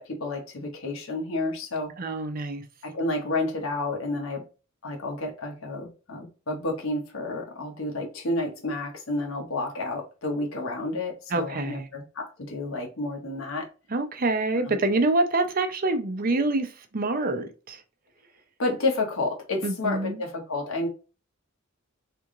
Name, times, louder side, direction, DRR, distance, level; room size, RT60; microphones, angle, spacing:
voice 1, 0.0-1.9 2.9-4.4 4.8-13.7 14.6-14.8 18.6-20.9, left 2 dB, 75° left, 1.0 m, -30 dB
voice 2, 2.0-2.6 11.3-11.9 13.9-17.8 19.6-20.2, right 2 dB, 45° right, 0.6 m, -26 dB
3.4 x 3.0 x 3.7 m
head